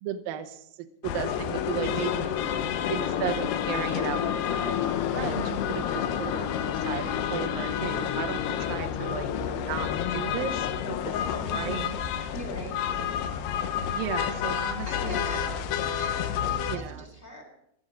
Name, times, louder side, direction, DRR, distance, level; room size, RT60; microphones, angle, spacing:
voice 1, 0.0-11.8 13.9-15.4 16.7-17.1, right 10 dB, 75° right, 6 dB, 2.2 m, -36 dB
sound 1, 1.0-16.8, left 9 dB, 80° left, 2.8 m, -29 dB
voice 2, 11.1-11.9 12.3-13.1 14.8-15.5 15.8-17.4, right 1 dB, 15° left, 3 dB, 3.3 m, -41 dB
14.0 x 13.0 x 5.2 m, 0.76 s
omnidirectional pair, 5.0 m